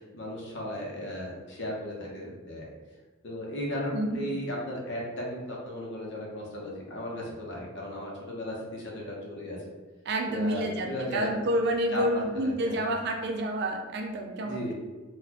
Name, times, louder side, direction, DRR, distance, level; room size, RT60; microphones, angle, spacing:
voice 1, 0.1-2.7 3.2-9.6 10.3-11.4 11.9-12.1 12.3-12.8 14.4-14.7, left 1 dB, 55° left, -2 dB, 0.7 m, -35 dB
voice 2, 3.9-4.3 10.1-14.7, right 1 dB, 55° right, 3 dB, 0.4 m, -29 dB
3.9 x 2.2 x 2.8 m, 1.2 s
head